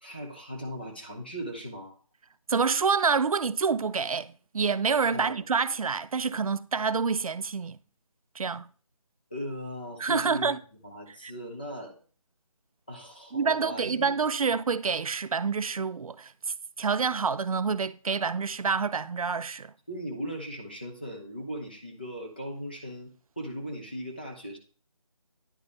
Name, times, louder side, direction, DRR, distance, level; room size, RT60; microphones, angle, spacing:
voice 1, 0.0-2.0 5.1-5.4 9.3-11.9 12.9-14.2 19.9-24.6, equal, 15° left, 0.6 m, -38 dB
voice 2, 2.5-7.8 8.4-8.7 10.0-10.6 11.2-11.3 13.3-16.3 16.8-19.7, right 5 dB, 75° right, 0.4 m, -27 dB
9.9 x 3.4 x 4.0 m
figure-of-eight pair, 175°, 18 cm